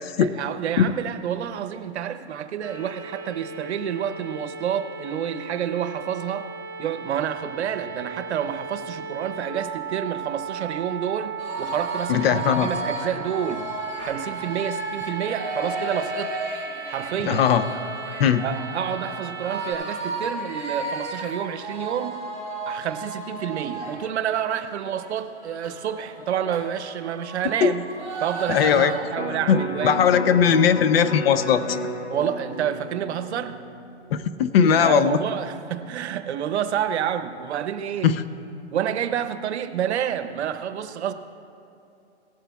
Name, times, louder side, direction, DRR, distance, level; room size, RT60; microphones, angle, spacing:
voice 1, 0.2-6.5 6.8-13.7 14.0-16.3 16.9-17.4 18.4-22.2 22.7-27.9 28.2-30.4 32.1-33.6 34.8-38.1 38.7-41.1, right 9 dB, 70° right, 10 dB, 0.9 m, -29 dB
sound 1, 2.6-19.7, right 5 dB, ahead, 2.7 m, -36 dB
sound 2, 11.4-24.0 24.4-24.5 24.8-29.0, right 2 dB, 20° left, 3.0 m, -34 dB
voice 2, 12.1-12.7 17.2-17.7 18.2-18.4 27.6-27.7 28.5-28.9 29.5-31.8 34.1-35.2 38.0-38.2, left 8 dB, 60° left, 12 dB, 0.7 m, -19 dB
Electric guitar, 29.1-35.4 35.8-35.9, left 1 dB, 80° left, 1.4 m, -34 dB
18.0 x 12.5 x 2.3 m, 2.7 s
hypercardioid pair, 145°, 34 cm